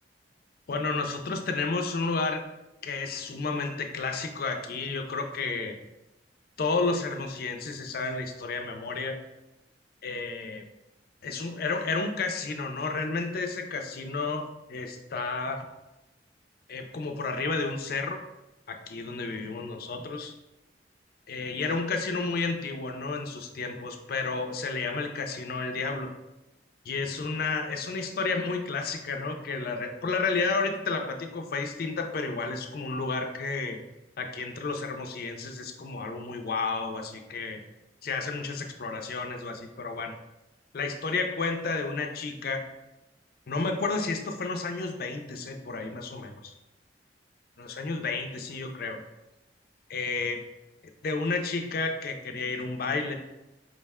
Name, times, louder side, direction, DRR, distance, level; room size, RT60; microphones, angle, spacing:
voice 1, 0.7-2.4 2.8-5.7 6.6-9.2 10.0-10.7 11.2-15.7 16.7-18.2 18.7-20.3 21.3-26.1 26.9-33.8 34.2-37.6 38.0-40.2 40.7-42.6 43.5-46.5 47.6-49.0 49.9-50.4 51.0-53.1, left 3 dB, 55° left, 5 dB, 0.4 m, -31 dB
4.9 x 2.1 x 3.5 m, 0.98 s
head